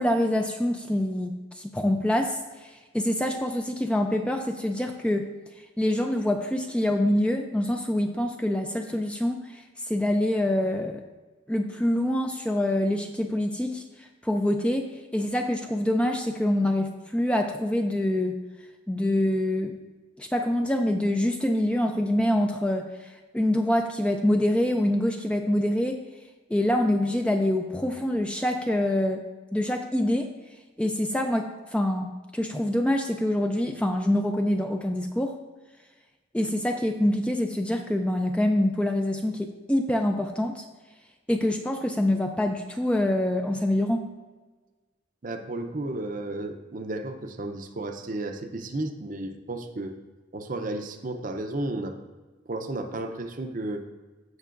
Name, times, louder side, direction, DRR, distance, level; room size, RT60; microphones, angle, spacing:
voice 1, 0.0-5.3 5.8-11.0 11.5-18.4 18.9-19.7 20.2-23.1 23.3-26.0 26.5-29.2 29.5-30.3 30.8-35.4 36.3-40.6 41.3-44.1, left 1 dB, 5° left, 4 dB, 0.3 m, -25 dB
voice 2, 45.2-49.9 50.3-52.0 52.5-53.8, right 2 dB, 40° right, 7 dB, 0.6 m, -33 dB
16.0 x 5.4 x 2.5 m, 1.3 s
head